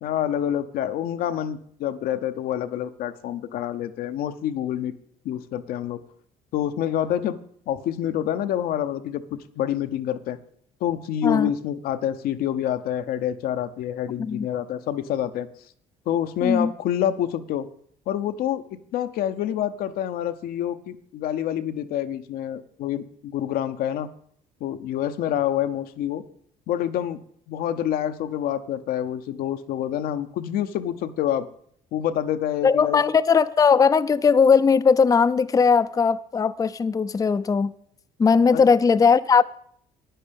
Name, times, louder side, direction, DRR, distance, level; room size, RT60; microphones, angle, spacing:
voice 1, 0.0-4.9 5.2-6.0 6.5-7.4 7.7-10.4 10.8-15.5 16.1-17.7 18.1-18.6 18.9-24.1 24.6-26.2 26.7-27.2 27.5-31.5 31.9-33.0 38.5-38.7, left 10 dB, 75° left, 0.7 m, -27 dB
voice 2, 16.4-16.7 32.6-37.7 38.2-39.4, left 5 dB, 25° left, 0.4 m, -19 dB
10.0 x 9.5 x 5.2 m
supercardioid pair, 70°, 15 cm